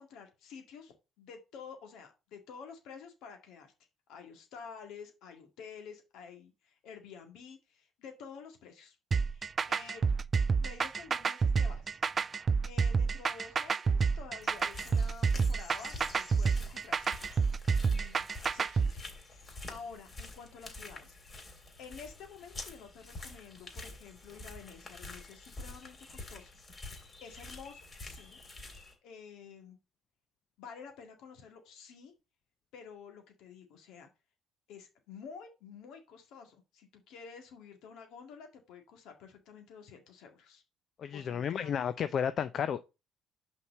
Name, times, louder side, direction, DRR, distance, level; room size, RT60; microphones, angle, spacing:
voice 1, 0.0-3.7 4.1-10.0 10.6-12.0 12.6-17.4 17.8-21.2 21.8-26.5 27.0-28.4 29.0-29.8 30.6-32.1 32.7-34.1 34.7-40.6 41.1-41.9, left 6 dB, 70° left, 2.0 m, -50 dB
sound 1, 9.1-18.9, right 5 dB, 40° right, 0.3 m, -29 dB
sound 2, 14.4-28.9, left 2 dB, 35° left, 3.0 m, -48 dB
voice 2, 41.0-42.8, left 8 dB, 55° left, 0.5 m, -32 dB
5.7 x 4.7 x 5.2 m
hypercardioid pair, 60°, 0 cm